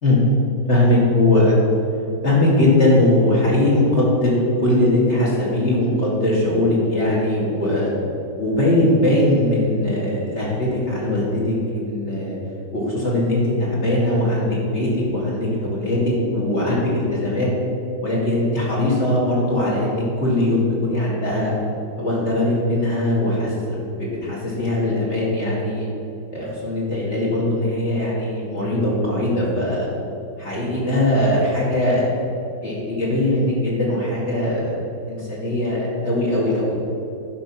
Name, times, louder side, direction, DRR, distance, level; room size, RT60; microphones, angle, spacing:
voice 1, 0.7-1.6 2.2-7.9 8.4-12.4 12.7-17.5 18.0-21.5 22.0-25.9 26.3-29.9 30.4-32.1 32.6-34.8 35.1-36.7, left 1 dB, 30° left, -6 dB, 2.4 m, -20 dB
11.5 x 5.2 x 6.0 m, 2.8 s
omnidirectional pair, 2.3 m